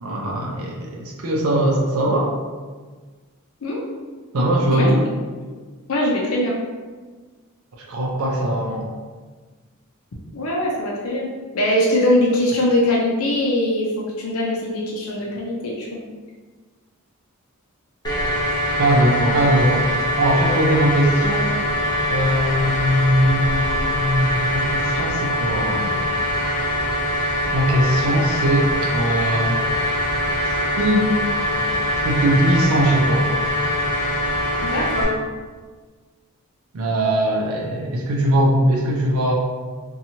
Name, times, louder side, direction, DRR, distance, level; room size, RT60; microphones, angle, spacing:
voice 1, 0.0-2.4 4.3-5.1 7.8-8.9 18.8-26.0 27.5-29.6 30.8-31.1 32.0-33.3 36.7-39.3, right 1 dB, 75° right, -2 dB, 0.5 m, -20 dB
voice 2, 5.9-6.6 10.3-11.3 11.5-16.0 34.6-35.2, left 1 dB, 70° left, -4 dB, 0.5 m, -21 dB
sound 1, 18.0-35.0, equal, 20° left, 0.6 m, -23 dB
2.8 x 2.3 x 2.7 m, 1.4 s
head